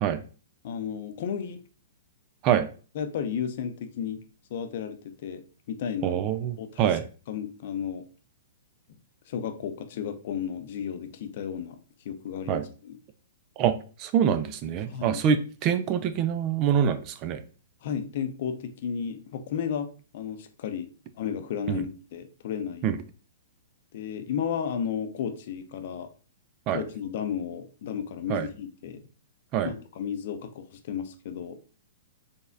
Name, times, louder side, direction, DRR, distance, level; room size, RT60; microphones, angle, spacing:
voice 1, 0.6-1.6 2.9-4.2 4.5-6.3 6.6-7.0 7.3-8.0 9.3-11.8 12.0-13.0 14.9-15.2 17.8-20.9 21.2-22.9 23.9-26.1 26.7-29.0 29.6-31.6, left 8 dB, 55° left, 8 dB, 0.6 m, -33 dB
voice 2, 6.0-7.0 12.5-12.6 13.6-17.4 21.7-21.8 22.8-23.0 26.7-26.8 28.3-28.5 29.5-29.7, right 8 dB, 35° right, 11 dB, 0.4 m, -25 dB
4.1 x 3.4 x 2.6 m, 0.37 s
hypercardioid pair, 135°, 0 cm